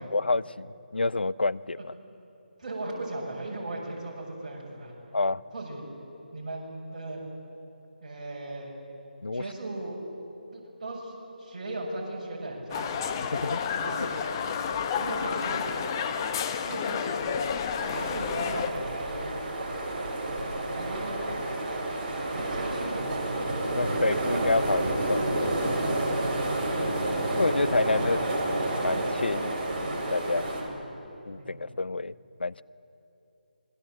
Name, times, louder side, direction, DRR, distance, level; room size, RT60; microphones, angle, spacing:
voice 1, 0.0-1.9 5.1-5.4 9.2-9.4 13.3-13.6 14.0-14.1 23.8-26.2 27.4-28.4 28.8-30.5 31.3-32.1 32.4-32.6, left 3 dB, 75° left, 18 dB, 0.6 m, -29 dB
voice 2, 2.6-5.0 5.5-5.8 6.3-7.2 8.0-8.7 9.3-10.0 10.5-13.0 13.4-14.5 14.9-15.9 16.7-17.5 17.9-19.4 20.6-21.4 22.3-23.6 26.5-28.2 30.7-30.8 31.4-31.7, right 2 dB, 40° right, -2 dB, 6.6 m, -38 dB
sound 1, 12.7-18.7, left 7 dB, 25° left, 1.1 m, -30 dB
sound 2, 17.8-30.6, right 1 dB, 25° right, 5.3 m, -30 dB
26.0 x 21.5 x 7.8 m, 3.0 s
figure-of-eight pair, 155°, 5 cm